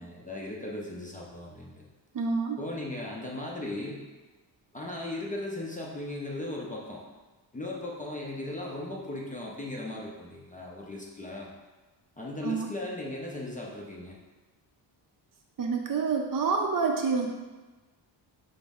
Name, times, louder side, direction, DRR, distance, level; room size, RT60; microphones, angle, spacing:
voice 1, 0.0-1.9 2.6-4.0 4.7-7.0 7.5-11.5 12.2-14.1, left 1 dB, 20° left, -3 dB, 0.5 m, -37 dB
voice 2, 2.1-2.6 12.4-12.7 15.6-17.3, right 5 dB, 45° right, 2 dB, 0.5 m, -27 dB
5.1 x 2.0 x 3.5 m, 1.2 s
cardioid pair, 100°, 46 cm